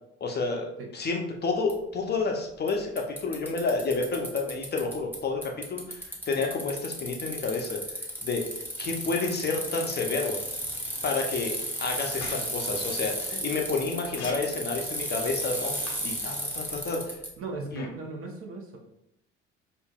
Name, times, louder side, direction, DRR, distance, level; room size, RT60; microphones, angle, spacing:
voice 1, 0.2-7.8 8.2-8.4 8.8-10.4 11.0-15.7 16.0-17.2 17.7-17.9, left 3 dB, 30° left, 1 dB, 0.7 m, -30 dB
Bicycle, 1.7-1.8 2.7-2.8 3.0-5.2 5.4-17.3, equal, 5° right, 1.1 m, -34 dB
sound 1, 12.2-12.3 14.1-14.3 15.9-16.0 17.7-17.9, left 4 dB, 75° left, 0.8 m, -38 dB
voice 2, 17.4-18.8, right 3 dB, 40° right, 2 dB, 0.9 m, -38 dB
4.8 x 2.6 x 2.4 m, 0.80 s
figure-of-eight pair, 60°, 34 cm